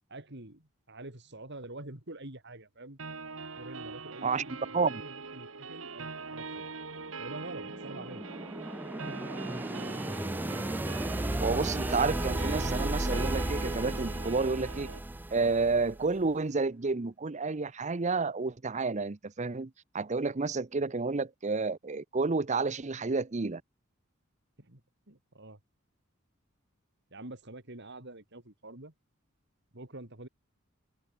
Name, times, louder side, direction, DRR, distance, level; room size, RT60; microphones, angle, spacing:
voice 1, 0.1-3.0 3.6-6.7 7.2-8.2 9.4-9.7 24.6-24.8 25.1-25.6 27.1-28.9 29.7-30.3, right 2 dB, 60° right, 3.6 m, -46 dB
sound 1, 3.0-15.0, right 4 dB, 75° right, 2.1 m, -42 dB
sound 2, 7.3-16.2, right 1 dB, 10° right, 0.4 m, -34 dB
voice 2, 11.4-14.9 15.3-23.6, right 4 dB, 35° right, 0.7 m, -30 dB
open air
head